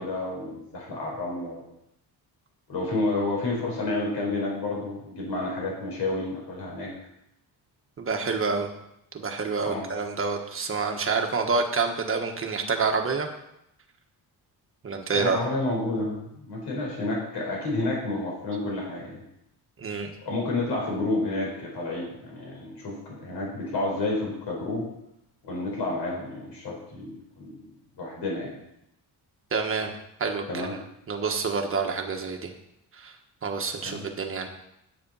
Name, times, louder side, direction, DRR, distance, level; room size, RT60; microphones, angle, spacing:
voice 1, 0.0-1.6 2.7-6.9 9.6-9.8 15.1-19.2 20.2-24.8 25.4-27.6 27.9-28.5 30.5-30.7 33.8-34.1, left 2 dB, 75° left, -2 dB, 4.7 m, -30 dB
voice 2, 8.0-8.7 9.1-13.3 14.8-15.4 19.8-20.1 29.5-29.9 30.2-30.7 31.1-32.5 33.0-33.1 33.4-34.5, right 4 dB, 30° right, 3 dB, 1.3 m, -27 dB
9.9 x 8.7 x 5.5 m, 0.82 s
wide cardioid pair, 170°, 40 cm